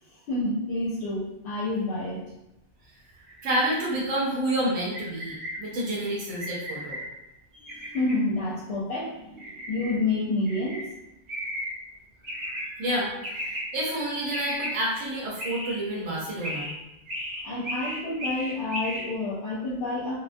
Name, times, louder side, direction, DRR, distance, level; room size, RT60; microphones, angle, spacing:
voice 1, 0.1-2.3 7.6-10.9 17.4-20.2, left 2 dB, 70° left, -6 dB, 0.8 m, -29 dB
sound 1, 3.2-3.9 4.9-5.6 6.4-7.0 7.7-8.1 9.4-9.9 10.5-10.8 11.3-11.7 12.2-12.6 13.2-13.6 14.3-14.7 15.4-15.8 16.4-16.7 17.1-19.0, equal, 50° right, 0.9 m, -35 dB
voice 2, 3.4-7.0 7.6-7.7 12.5-16.7, right 1 dB, 80° right, -4 dB, 0.9 m, -29 dB
2.2 x 2.2 x 2.5 m, 0.90 s
omnidirectional pair, 1.2 m